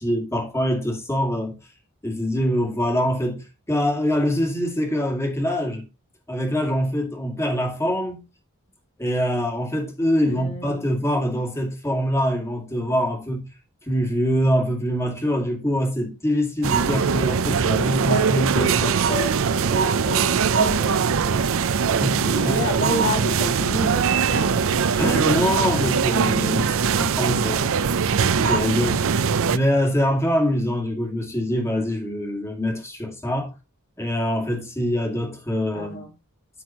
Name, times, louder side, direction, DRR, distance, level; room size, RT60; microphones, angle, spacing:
voice 1, 0.0-1.6 2.0-5.9 6.3-8.2 9.0-13.5 13.8-18.7 22.0-22.7 25.0-28.0 28.4-29.1 29.5-33.6 34.0-36.0, equal, 10° left, 2.4 m, -24 dB
voice 2, 10.3-10.9 17.7-21.7 22.2-24.7 35.7-36.1, left 1 dB, 50° left, 1.9 m, -31 dB
sound 1, 16.6-29.6, right 6 dB, 65° right, 0.5 m, -21 dB
13.5 x 4.5 x 2.9 m
head